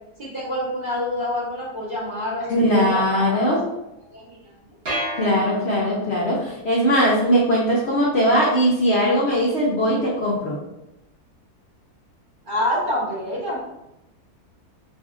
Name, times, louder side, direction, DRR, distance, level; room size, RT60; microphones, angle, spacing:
voice 1, 0.2-3.4 4.1-4.4 12.4-13.6, left 1 dB, 35° right, -8 dB, 1.2 m, -27 dB
voice 2, 2.5-3.6 5.2-10.6, equal, 55° left, -6 dB, 0.9 m, -20 dB
sound 1, 4.9-6.2, equal, 60° right, 2.0 m, -30 dB
5.3 x 2.6 x 2.4 m, 0.88 s
omnidirectional pair, 1.7 m